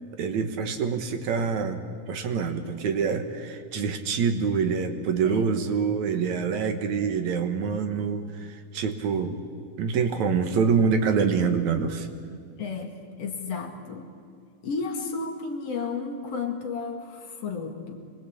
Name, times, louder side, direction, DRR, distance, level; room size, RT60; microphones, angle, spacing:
voice 1, 0.2-8.5 8.7-9.4 9.8-12.1, right 6 dB, 70° right, 7 dB, 2.6 m, -26 dB
voice 2, 5.2-5.6 12.6-14.1 14.6-18.0, left 4 dB, 55° left, 3 dB, 2.9 m, -33 dB
25.0 x 20.0 x 8.6 m, 2.2 s
omnidirectional pair, 3.6 m